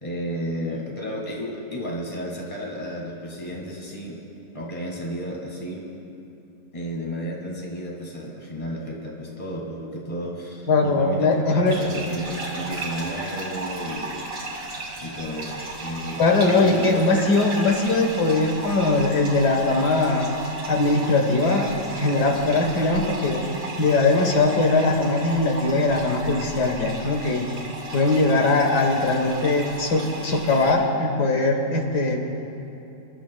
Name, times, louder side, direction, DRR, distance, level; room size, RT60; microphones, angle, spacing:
voice 1, 0.0-4.2 4.5-5.9 6.7-14.3 15.0-16.2 16.6-17.0, equal, 20° left, -2 dB, 1.8 m, -32 dB
voice 2, 10.7-11.8 16.2-20.3 20.7-21.7 21.9-23.4 23.8-27.5 27.9-32.2, left 3 dB, 70° left, 2 dB, 1.8 m, -20 dB
sound 1, 11.7-30.7, right 2 dB, 50° right, 2.9 m, -35 dB
28.5 x 12.5 x 2.2 m, 3.0 s
omnidirectional pair, 1.8 m